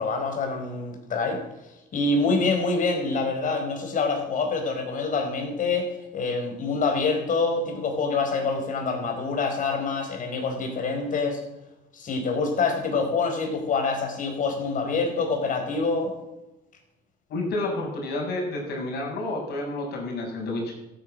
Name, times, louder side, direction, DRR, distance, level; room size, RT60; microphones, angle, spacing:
voice 1, 0.0-1.4 1.9-11.4 11.9-16.1, left 4 dB, 50° left, 3 dB, 4.9 m, -26 dB
voice 2, 17.3-20.7, left 2 dB, 70° left, -1 dB, 6.7 m, -30 dB
15.0 x 9.9 x 7.7 m, 0.96 s
cardioid pair, 110°, 17 cm